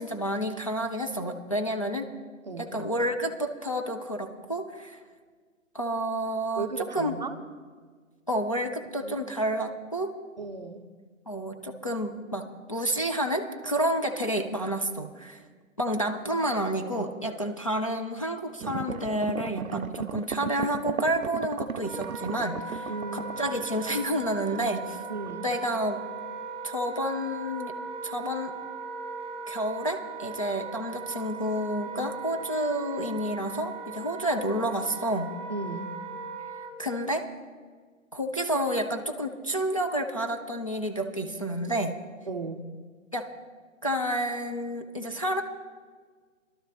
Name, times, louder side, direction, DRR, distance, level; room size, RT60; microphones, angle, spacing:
voice 1, 0.0-2.1 2.6-5.0 5.7-7.2 8.3-10.1 11.3-15.4 15.8-25.0 25.4-26.0 26.6-27.7 28.0-28.5 29.5-35.4 36.8-37.3 38.1-42.0 43.1-43.3 43.8-45.4, equal, 25° left, 3 dB, 0.4 m, -30 dB
voice 2, 2.5-2.8 6.6-7.3 9.0-9.2 10.4-10.8 22.9-23.3 25.1-25.4 35.5-35.9 42.3-42.6, right 4 dB, 35° right, 8 dB, 0.5 m, -35 dB
sound 1, 18.6-24.9 25.3-25.4, right 7 dB, 90° right, 0.5 m, -36 dB
Wind instrument woodwind instrument, 21.8-36.7, right 4 dB, 15° right, 1.5 m, -39 dB
22.5 x 12.0 x 2.9 m, 1.6 s
figure-of-eight pair, 135°, 40 cm